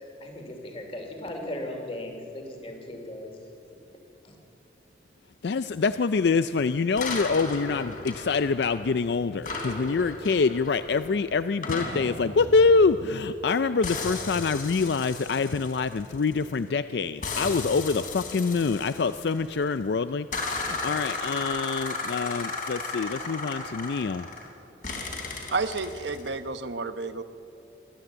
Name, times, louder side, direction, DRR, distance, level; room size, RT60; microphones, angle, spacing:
voice 1, 0.0-3.4 4.2-4.4, left 1 dB, 30° left, 3 dB, 2.7 m, -37 dB
voice 2, 5.4-24.3, left 4 dB, 65° left, 12 dB, 0.4 m, -25 dB
sound 1, 7.0-9.0 9.4-13.4 13.8-16.6 17.2-19.7 20.3-24.5 24.8-26.3, left 3 dB, 45° left, 3.2 m, -35 dB
voice 3, 25.5-27.2, right 3 dB, 75° right, 10 dB, 1.0 m, -31 dB
23.0 x 14.5 x 8.0 m, 2.9 s
head